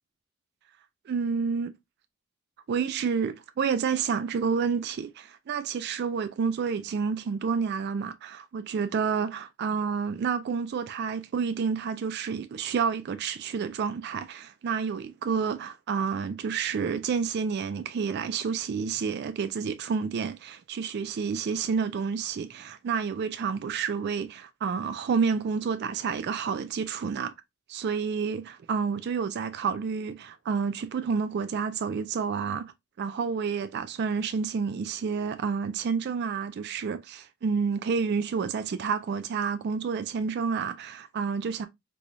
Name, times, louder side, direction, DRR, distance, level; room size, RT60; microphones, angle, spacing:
voice 1, 1.1-1.7 2.7-27.3 27.7-32.6 33.0-41.7, right 6 dB, 50° right, 0.3 m, -29 dB
4.0 x 2.3 x 2.9 m
head